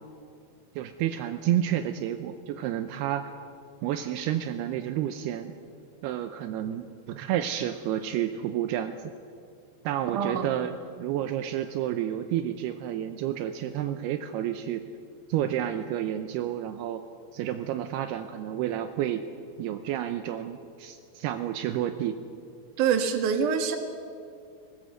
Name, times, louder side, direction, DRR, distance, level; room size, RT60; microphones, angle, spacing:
voice 1, 0.8-3.3 3.8-5.5 6.0-9.0 9.8-10.7 11.0-14.8 15.3-17.0 17.3-19.2 19.6-22.2, right 11 dB, 85° right, 8 dB, 2.3 m, -30 dB
voice 2, 10.1-10.7 22.8-23.8, right 7 dB, 60° right, 6 dB, 2.4 m, -26 dB
20.5 x 19.5 x 7.9 m, 2.3 s
omnidirectional pair, 5.5 m